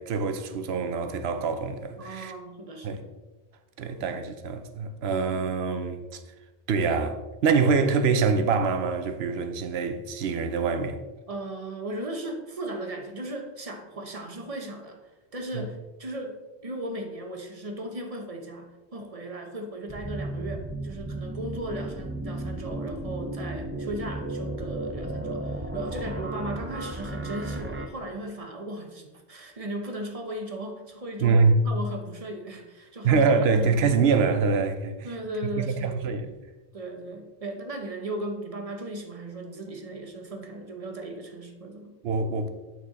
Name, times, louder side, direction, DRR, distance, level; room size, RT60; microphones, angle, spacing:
voice 1, 0.0-2.3 2.8-3.0 3.8-6.2 6.7-11.0 15.5-15.7 31.2-31.6 33.0-35.1 35.6-36.3 42.0-42.5, right 4 dB, 80° right, 0.9 m, -25 dB
voice 2, 2.0-3.1 3.8-4.2 11.3-15.0 15.3-34.0 35.0-36.2 36.7-41.9, right 1 dB, 35° right, 0.9 m, -37 dB
sound 1, 19.9-27.9, right 1 dB, 20° right, 0.4 m, -34 dB
8.7 x 4.5 x 4.0 m
omnidirectional pair, 1.0 m